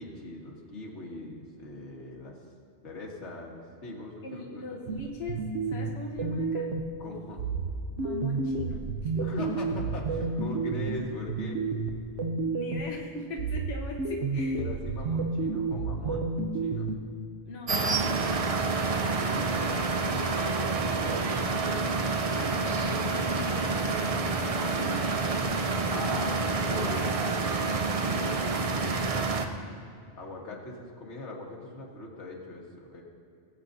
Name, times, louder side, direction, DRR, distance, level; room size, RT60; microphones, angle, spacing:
voice 1, 0.0-2.4 2.8-4.6 7.0-7.4 9.2-11.6 14.5-16.2 16.5-16.9 19.0-19.6 20.0-21.5 25.9-29.5 30.1-33.0, left 2 dB, 90° left, -1 dB, 1.8 m, -41 dB
voice 2, 4.2-6.7 8.0-9.4 12.5-14.6 17.4-18.5 22.3-26.3 26.7-27.1, left 2 dB, 65° left, -1 dB, 1.1 m, -40 dB
sound 1, 4.9-7.0 7.4-13.0 13.4-17.0, right 3 dB, 90° right, 1.0 m, -31 dB
sound 2, 17.7-29.5, right 3 dB, 40° right, 0.5 m, -28 dB
19.0 x 8.4 x 2.6 m, 2.5 s
omnidirectional pair, 1.2 m